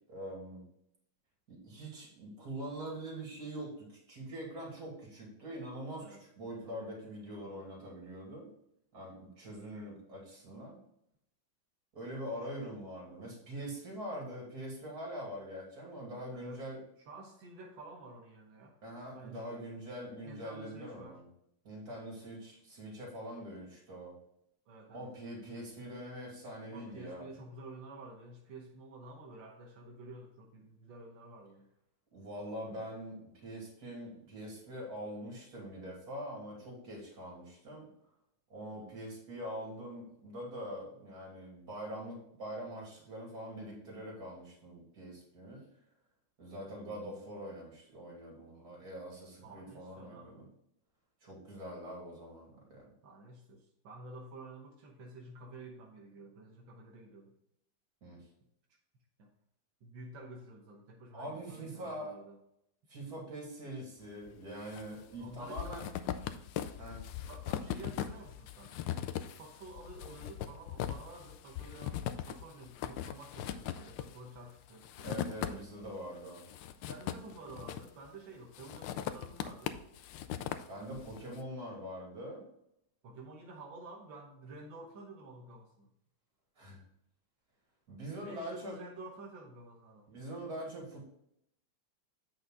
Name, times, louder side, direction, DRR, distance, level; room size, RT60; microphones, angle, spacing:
voice 1, 0.1-0.6 1.5-8.5 8.9-10.8 11.9-16.8 18.8-21.2 21.6-24.1 24.9-27.3 32.1-37.9 38.5-45.6 46.4-50.5 51.2-52.9 58.0-58.2 61.1-62.1 62.9-65.8 66.8-67.0 75.0-76.4 80.7-82.4 86.6-86.8 87.9-88.8 90.1-91.0, right 1 dB, 55° right, -2 dB, 3.1 m, -43 dB
voice 2, 16.3-16.6 17.1-18.7 19.1-19.7 20.2-21.2 24.7-25.0 26.6-31.7 32.7-32.8 49.4-50.4 53.0-57.3 59.2-59.3 59.8-62.4 64.9-65.9 67.3-68.8 69.4-75.1 76.8-79.8 81.0-81.3 83.0-85.9 88.2-90.1, right 2 dB, 90° right, 0 dB, 1.8 m, -50 dB
sound 1, 64.3-64.9 65.1-75.9 76.3-78.1 78.5-81.2, left 10 dB, 85° left, 1.3 m, -40 dB
8.2 x 5.6 x 3.7 m, 0.76 s
omnidirectional pair, 2.0 m